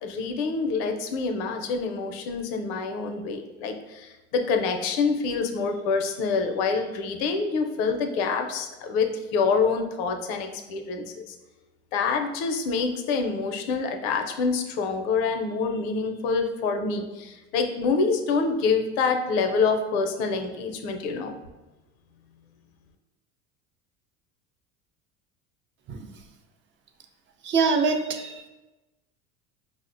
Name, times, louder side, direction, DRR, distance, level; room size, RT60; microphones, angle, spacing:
voice 1, 0.0-11.4 11.9-21.4, left 4 dB, 80° left, 5 dB, 0.5 m, -26 dB
voice 2, 27.4-28.5, right 4 dB, 40° right, 4 dB, 0.4 m, -24 dB
5.0 x 2.0 x 2.5 m, 1.1 s
supercardioid pair, 95°, 31 cm